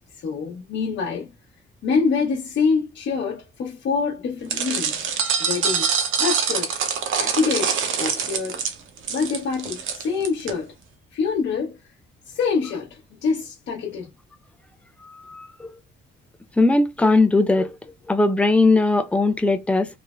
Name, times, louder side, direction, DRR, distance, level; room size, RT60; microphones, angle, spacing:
voice 1, 0.2-1.3 1.8-4.9 5.4-5.9 6.2-6.7 7.1-8.6 9.1-10.7 11.1-11.8 12.3-14.1, left 5 dB, 65° left, 0.8 m, -25 dB
sound 1, 4.5-10.5, right 6 dB, 75° right, 0.7 m, -24 dB
voice 2, 16.6-17.7 18.1-19.9, left 2 dB, 5° left, 0.4 m, -18 dB
3.2 x 2.0 x 2.3 m
cardioid pair, 90°, 20 cm